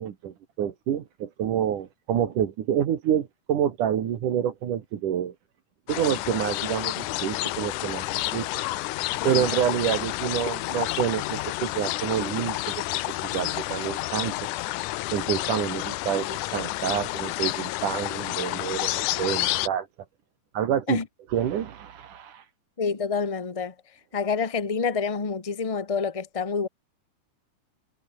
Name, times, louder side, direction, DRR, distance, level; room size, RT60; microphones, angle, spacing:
voice 1, 0.0-5.3 5.9-8.5 9.2-12.8 13.2-14.4 15.1-19.9 20.5-21.0 21.3-22.5, right 9 dB, 75° right, 3.4 m, -28 dB
sound 1, 5.9-19.7, left 18 dB, 80° left, 2.2 m, -30 dB
voice 2, 22.8-23.7 24.1-26.7, left 5 dB, 30° left, 0.6 m, -27 dB
omnidirectional pair, 3.7 m